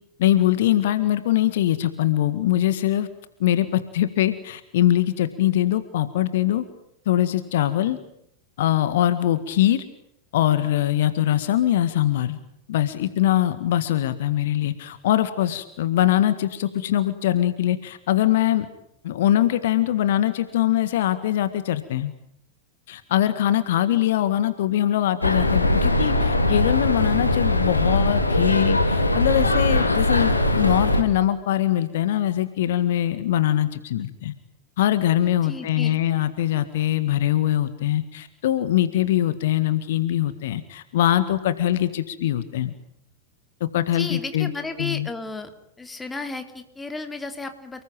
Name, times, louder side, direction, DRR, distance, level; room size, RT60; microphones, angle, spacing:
voice 1, 0.2-3.1 3.4-6.6 7.1-8.0 8.6-9.8 10.3-12.4 12.7-18.7 19.0-22.1 22.9-34.3 34.8-42.7 43.6-44.5 44.8-45.1, left 12 dB, 55° left, 12 dB, 1.8 m, -22 dB
sound 1, 25.2-31.0, left 1 dB, 80° left, 3.3 m, -21 dB
voice 2, 35.4-36.0 43.9-45.5 45.8-47.8, left 3 dB, 10° left, 7 dB, 3.5 m, -33 dB
30.0 x 20.0 x 9.2 m, 0.73 s
figure-of-eight pair, 90°, 0 cm